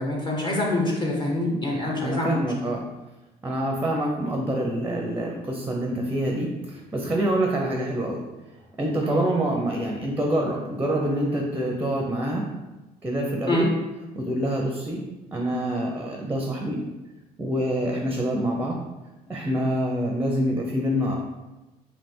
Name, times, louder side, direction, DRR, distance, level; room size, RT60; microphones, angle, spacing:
voice 1, 0.0-2.5 9.0-9.3 13.5-13.7, left 1 dB, 30° left, -2 dB, 0.8 m, -25 dB
voice 2, 2.0-2.8 3.4-8.2 8.8-12.4 13.0-13.7 14.1-15.0 15.3-16.8 17.4-18.8 19.3-21.2, right 1 dB, 10° right, 0 dB, 0.6 m, -26 dB
3.3 x 2.9 x 4.3 m, 1.1 s
cardioid pair, 110°, 17 cm